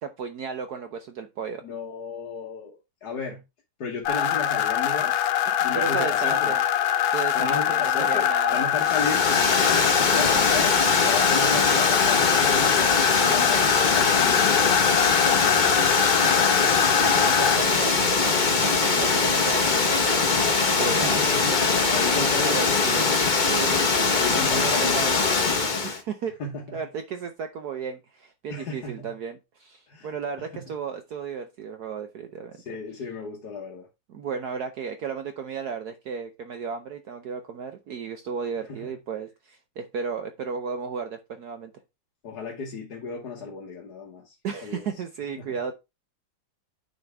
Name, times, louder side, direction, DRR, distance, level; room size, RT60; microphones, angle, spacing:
voice 1, 0.0-1.6 5.5-6.6 7.1-8.7 16.2-16.7 17.0-20.0 20.8-21.2 22.1-23.1 23.4-23.9 24.3-25.3 25.8-26.3 26.7-32.5 34.1-41.7 44.4-45.7, right 6 dB, 65° right, 1.2 m, -34 dB
voice 2, 1.6-3.4 3.8-5.2 5.6-6.6 7.3-9.5 10.0-12.9 13.2-15.0 20.8-22.6 24.1-25.9 26.4-26.8 28.5-29.1 29.9-30.1 30.5-30.6 32.6-33.9 38.7-38.9 42.2-44.3 44.6-44.9 45.4-45.5, left 4 dB, 55° left, 1.7 m, -34 dB
sound 1, 4.0-17.6, left 10 dB, 85° left, 1.5 m, -24 dB
Water, 8.8-26.0, left 4 dB, 35° left, 0.9 m, -22 dB
9.3 x 5.3 x 3.4 m
omnidirectional pair, 2.1 m